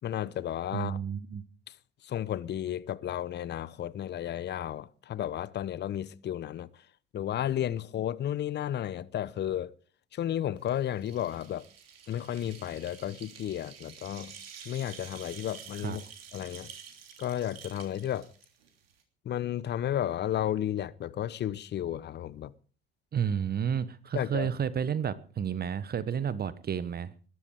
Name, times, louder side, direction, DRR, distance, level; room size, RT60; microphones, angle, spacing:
voice 1, 0.0-1.0 2.0-6.7 7.1-9.7 10.1-11.6 12.1-14.3 14.6-16.0 16.3-16.7 17.2-18.3 19.2-22.5 24.1-24.5, left 11 dB, 35° left, 1.0 m, -33 dB
voice 2, 0.7-1.4 15.7-16.0 23.1-27.1, right 8 dB, 30° right, 1.2 m, -31 dB
sound 1, 10.6-19.0, right 7 dB, 75° right, 3.3 m, -49 dB
21.0 x 12.0 x 4.8 m
figure-of-eight pair, 55°, 30 cm